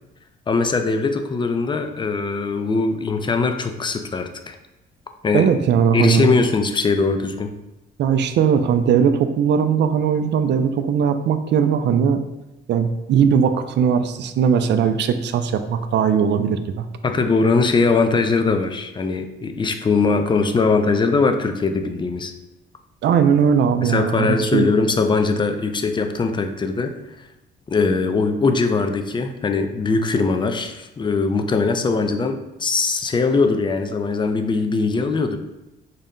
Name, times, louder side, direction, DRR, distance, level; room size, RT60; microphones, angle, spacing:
voice 1, 0.5-4.6 5.2-5.5 5.9-7.5 17.0-22.3 23.8-26.9 27.7-35.4, left 4 dB, 25° left, 7 dB, 0.4 m, -21 dB
voice 2, 5.3-6.4 8.0-12.2 12.7-16.8 23.0-24.7, right 7 dB, 60° right, 9 dB, 0.4 m, -19 dB
4.0 x 2.1 x 3.7 m, 0.97 s
cardioid pair, 90°, 20 cm